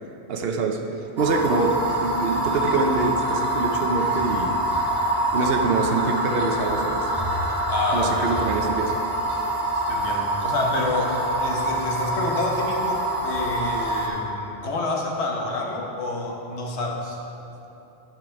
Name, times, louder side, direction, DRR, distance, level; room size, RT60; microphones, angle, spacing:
voice 1, 0.3-0.8 1.2-4.6 5.3-7.1 7.9-9.1, right 3 dB, 65° right, 4 dB, 0.9 m, -25 dB
sound 1, 1.2-14.1, right 1 dB, 20° right, 1.2 m, -25 dB
voice 2, 7.7-8.5 9.7-17.2, left 2 dB, 80° left, -1 dB, 1.3 m, -28 dB
10.5 x 4.5 x 5.0 m, 2.9 s
omnidirectional pair, 1.1 m